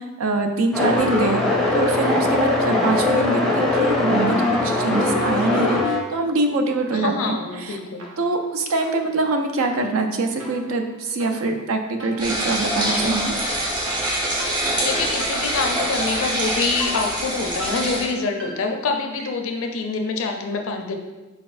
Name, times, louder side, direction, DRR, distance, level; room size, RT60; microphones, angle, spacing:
voice 1, 0.0-1.4 1.7-7.8 8.2-13.4, right 3 dB, 90° right, 5 dB, 0.5 m, -24 dB
sound 1, 0.7-6.0, left 2 dB, ahead, 0.5 m, -21 dB
voice 2, 6.9-8.0 14.8-20.9, left 4 dB, 80° left, 4 dB, 0.5 m, -26 dB
sound 2, 7.2-7.7 8.0-19.6, right 1 dB, 70° right, 0.8 m, -40 dB
sound 3, 12.2-18.1, right 1 dB, 20° right, 0.8 m, -25 dB
4.2 x 4.0 x 2.5 m, 1.1 s
head